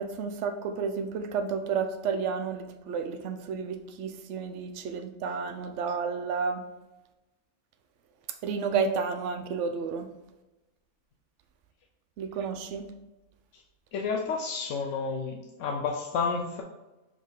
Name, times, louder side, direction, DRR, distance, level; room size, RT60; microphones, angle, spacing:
voice 1, 0.0-6.6 8.4-10.1 12.2-12.9, right 5 dB, 75° right, 6 dB, 1.0 m, -31 dB
voice 2, 13.9-16.6, left 5 dB, 80° left, 1 dB, 1.0 m, -31 dB
5.3 x 5.0 x 3.8 m, 1.0 s
omnidirectional pair, 1.3 m